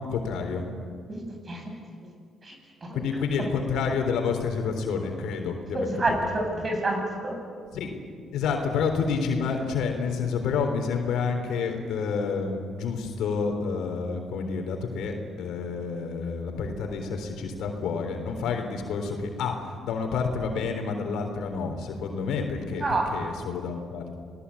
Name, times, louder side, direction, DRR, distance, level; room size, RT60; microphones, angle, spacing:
voice 1, 0.1-0.7 2.9-6.2 7.7-7.9 8.3-24.1, left 5 dB, 80° left, 4 dB, 3.6 m, -29 dB
voice 2, 1.1-1.6 2.4-2.6 2.8-3.0 5.7-7.4 22.8-23.1, right 2 dB, 40° right, 3 dB, 7.7 m, -28 dB
27.5 x 18.5 x 8.6 m, 2.1 s
supercardioid pair, 65°, 0 cm